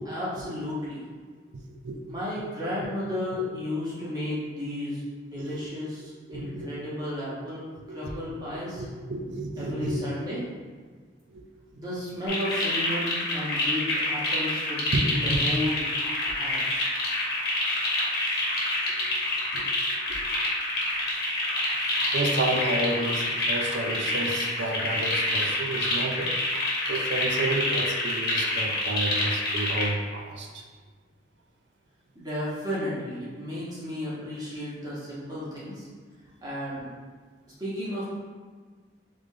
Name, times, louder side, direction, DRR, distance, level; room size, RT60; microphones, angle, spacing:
voice 1, 0.1-1.0 2.0-8.8 9.6-10.4 11.7-15.9 16.3-16.9 32.1-35.9 36.4-36.9 37.6-38.0, left 1 dB, 20° right, -10 dB, 1.4 m, -33 dB
voice 2, 1.5-2.0 2.8-2.9 5.4-5.7 6.3-6.9 7.7-8.1 8.7-10.0 11.3-11.4 14.9-15.0 15.3-15.4 18.9-19.1 19.5-19.7 20.1-20.2 22.1-26.3 26.9-30.7, right 2 dB, 65° right, 3 dB, 0.5 m, -31 dB
sound 1, 12.3-29.9, left 1 dB, 55° left, 1.1 m, -27 dB
3.5 x 3.5 x 3.7 m, 1.5 s
head